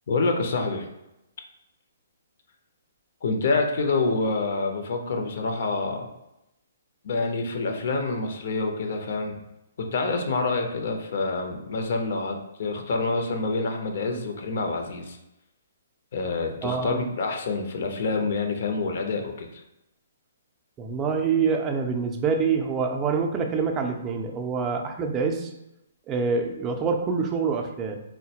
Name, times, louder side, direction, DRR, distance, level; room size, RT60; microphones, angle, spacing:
voice 1, 0.1-0.9 3.2-6.1 7.0-9.4 9.9-15.2 16.1-19.6, left 3 dB, 60° left, 4 dB, 0.6 m, -27 dB
voice 2, 16.6-17.1 20.8-25.5 26.1-28.0, right 5 dB, 20° right, 3 dB, 0.4 m, -26 dB
3.8 x 2.1 x 2.8 m, 0.89 s
hypercardioid pair, 140°, 0 cm